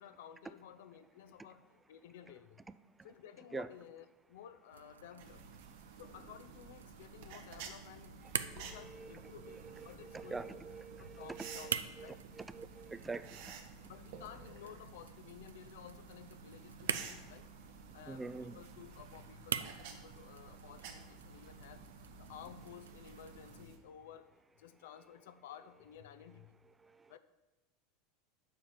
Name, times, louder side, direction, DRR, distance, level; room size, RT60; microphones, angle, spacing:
voice 1, 0.0-2.6 3.0-5.4 6.0-8.1 8.5-9.6 9.8-10.6 11.0-12.2 13.8-17.5 17.9-21.8 22.2-24.3 24.6-26.6 27.1-27.2, left 9 dB, 75° left, 11 dB, 0.5 m, -54 dB
sound 1, 4.7-23.6, right 7 dB, 85° right, 0.4 m, -46 dB
sound 2, 5.2-23.8, right 5 dB, 65° right, 1.1 m, -53 dB
voice 2, 8.4-9.1 9.4-13.4 18.1-18.6, right 3 dB, 15° right, 14 dB, 0.4 m, -45 dB
6.8 x 5.0 x 7.0 m, 1.2 s
hypercardioid pair, 90°, 0 cm